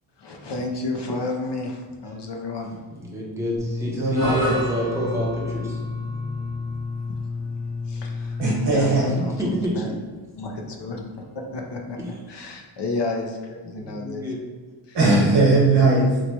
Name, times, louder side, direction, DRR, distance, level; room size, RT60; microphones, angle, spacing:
voice 1, 0.2-2.7 7.9-9.9 10.4-11.0 11.3-14.3 14.9-15.0, left 2 dB, 60° left, 2 dB, 0.5 m, -31 dB
voice 2, 3.0-5.8 9.4-9.8 12.0-12.1 13.6-14.4, equal, 5° right, -4 dB, 0.6 m, -28 dB
sound 1, 3.6-8.6, left 4 dB, 85° left, 1.4 m, -31 dB
voice 3, 4.0-4.5 8.4-9.1 14.9-16.1, right 2 dB, 60° right, -4 dB, 1.1 m, -18 dB
sound 2, 4.1-12.6, equal, 35° left, 1.1 m, -37 dB
3.1 x 2.1 x 4.1 m, 1.4 s
wide cardioid pair, 145°, 48 cm